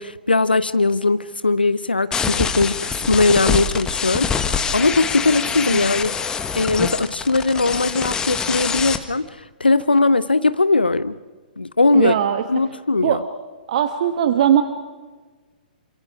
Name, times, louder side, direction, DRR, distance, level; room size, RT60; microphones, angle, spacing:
voice 1, 0.0-11.2 11.6-12.1 12.5-13.2, left 3 dB, 85° left, 15 dB, 0.7 m, -20 dB
sound 1, 2.1-9.0, left 6 dB, 15° left, 1.5 m, -25 dB
voice 2, 11.9-12.4 13.0-13.2 13.7-14.6, right 10 dB, 50° right, 9 dB, 1.4 m, -19 dB
28.0 x 26.5 x 4.8 m, 1.3 s
figure-of-eight pair, 120°, 5 cm